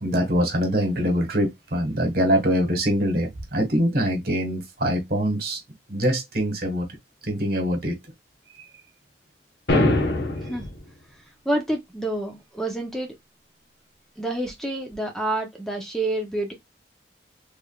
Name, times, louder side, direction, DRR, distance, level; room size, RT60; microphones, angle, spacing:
voice 1, 0.0-5.6 5.9-6.9 7.2-7.9, equal, 60° right, 1.4 m, -23 dB
sound 1, 9.7-10.7, left 2 dB, 70° left, 0.9 m, -21 dB
voice 2, 11.4-13.1 14.2-16.5, right 1 dB, 5° left, 0.7 m, -28 dB
3.5 x 3.2 x 2.2 m
head